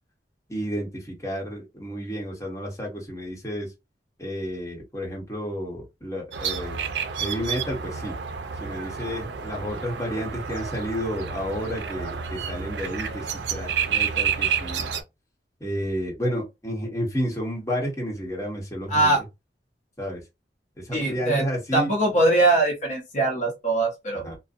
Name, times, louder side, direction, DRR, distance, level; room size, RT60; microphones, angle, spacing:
voice 1, 0.5-3.7 4.2-6.8 7.2-8.1 8.6-14.9 15.6-19.2 20.0-20.2 20.8-21.9 24.2-24.4, equal, 15° left, 1.0 m, -31 dB
sound 1, 6.3-15.0, right 7 dB, 75° right, 0.4 m, -30 dB
voice 2, 20.9-21.4 21.7-24.3, right 2 dB, 45° left, 0.8 m, -22 dB
2.5 x 2.1 x 2.5 m
head